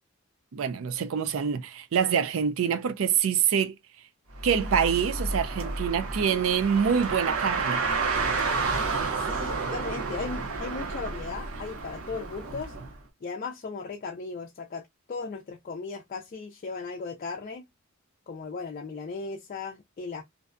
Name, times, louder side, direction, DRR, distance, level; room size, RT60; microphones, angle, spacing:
voice 1, 0.5-3.8 4.4-7.8, right 7 dB, 70° right, 0.4 m, -25 dB
Car, 4.3-12.9, right 4 dB, 90° right, 0.8 m, -30 dB
voice 2, 9.2-12.7 13.2-14.8 15.1-17.6 18.3-20.2, left 4 dB, 40° left, 0.4 m, -37 dB
2.6 x 2.1 x 2.4 m
head